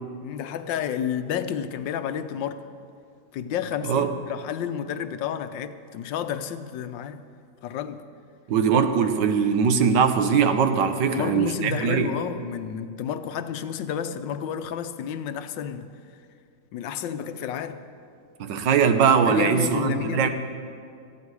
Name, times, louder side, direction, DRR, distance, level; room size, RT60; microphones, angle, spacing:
voice 1, 0.2-2.6 3.3-7.2 7.6-8.0 11.1-15.9 16.7-17.8 19.3-20.3, left 8 dB, 85° left, 1.5 m, -31 dB
voice 2, 8.5-12.1 18.4-20.3, right 6 dB, 75° right, 1.6 m, -21 dB
18.5 x 13.5 x 4.8 m
omnidirectional pair, 1.9 m